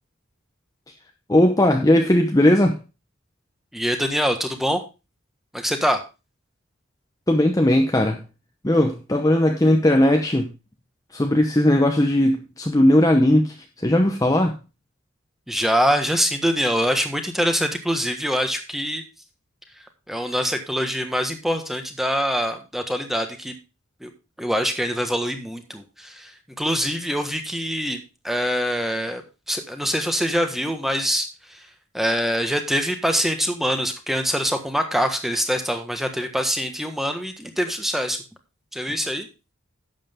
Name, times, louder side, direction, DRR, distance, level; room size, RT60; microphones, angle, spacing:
voice 1, 1.3-2.8 7.3-8.2 8.6-10.5 11.1-14.6, left 1 dB, 15° left, 0.8 m, -18 dB
voice 2, 3.7-4.8 5.5-6.0 15.5-19.0 20.1-23.5 24.0-24.1 24.4-26.3 26.6-29.2 29.5-31.3 31.9-38.2 38.7-39.3, equal, ahead, 1.4 m, -24 dB
11.5 x 7.7 x 3.6 m
head